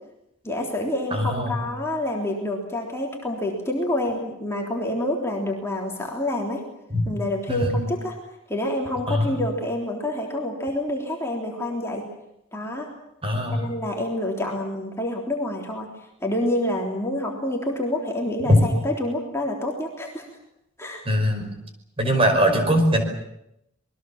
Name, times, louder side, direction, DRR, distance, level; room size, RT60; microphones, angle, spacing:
voice 1, 0.4-6.6 7.0-8.2 8.5-12.1 12.5-12.9 13.5-15.9 16.2-20.3 20.8-21.0, left 1 dB, 15° left, -1 dB, 3.3 m, -27 dB
voice 2, 1.1-1.6 6.9-7.0 7.5-7.8 9.1-9.4 13.2-13.7 18.5-18.6 21.1-21.4 22.0-23.0, equal, 25° right, 4 dB, 5.3 m, -21 dB
27.0 x 21.5 x 7.3 m, 0.81 s
head